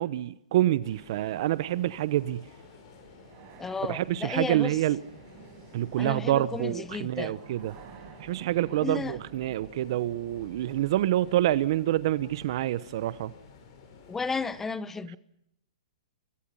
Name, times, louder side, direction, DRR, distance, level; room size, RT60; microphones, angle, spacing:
voice 1, 0.0-2.4 3.9-5.0 5.7-7.7 8.2-13.3, right 14 dB, 50° right, 0.9 m, -27 dB
sound 1, 0.8-14.6, left 5 dB, 45° left, 7.8 m, -53 dB
sound 2, 1.6-11.4, right 7 dB, 35° right, 5.4 m, -52 dB
voice 2, 3.6-4.8 6.0-7.4 8.8-9.2 14.1-15.2, left 4 dB, 10° left, 0.9 m, -33 dB
28.5 x 23.0 x 5.6 m
hypercardioid pair, 145°, 3 cm